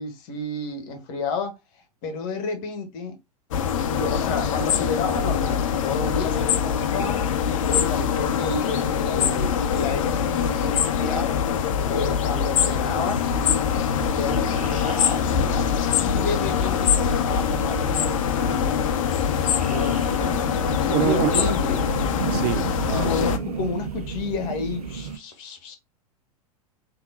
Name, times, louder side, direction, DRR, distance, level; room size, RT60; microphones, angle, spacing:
voice 1, 0.0-1.5 2.0-3.2 3.9-7.3 7.7-11.4 11.9-13.2 14.1-15.7 16.0-18.9 19.7-21.9 22.9-25.8, left 3 dB, 45° left, 1.2 m, -31 dB
sound 1, 3.5-23.4, left 8 dB, 60° left, 0.5 m, -23 dB
sound 2, 12.9-25.2, right 5 dB, 80° right, 0.7 m, -34 dB
voice 2, 20.9-21.5 22.3-23.4, right 11 dB, 40° right, 0.4 m, -26 dB
3.5 x 2.7 x 2.6 m
figure-of-eight pair, 95°, 19 cm